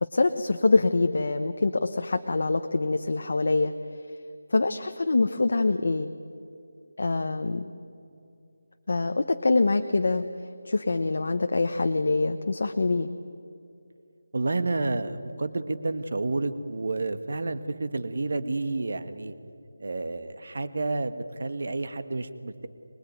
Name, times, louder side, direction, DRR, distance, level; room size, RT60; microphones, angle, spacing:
voice 1, 0.0-3.7 4.5-6.1 7.0-7.7 8.9-10.2 10.6-13.1, left 3 dB, 50° left, 6 dB, 1.0 m, -24 dB
voice 2, 14.3-19.3 19.8-22.7, right 2 dB, 45° right, 11 dB, 1.4 m, -30 dB
24.0 x 20.5 x 9.3 m, 2.6 s
figure-of-eight pair, 180°, 0 cm